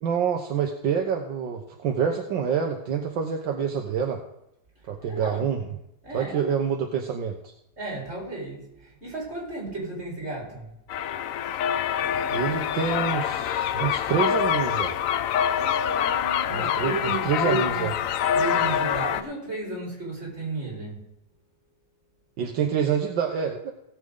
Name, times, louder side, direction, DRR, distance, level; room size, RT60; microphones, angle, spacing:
voice 1, 0.0-4.2 4.9-5.6 6.1-7.5 12.3-15.0 16.5-17.9 22.4-23.7, right 7 dB, 75° right, 2 dB, 1.7 m, -27 dB
voice 2, 5.0-5.4 6.0-6.5 7.8-10.7 15.5-17.9 18.3-21.1, right 2 dB, 35° right, -4 dB, 5.1 m, -34 dB
sound 1, 10.9-19.2, left 9 dB, 80° left, 0.7 m, -25 dB
17.5 x 7.6 x 3.8 m, 0.83 s
omnidirectional pair, 2.1 m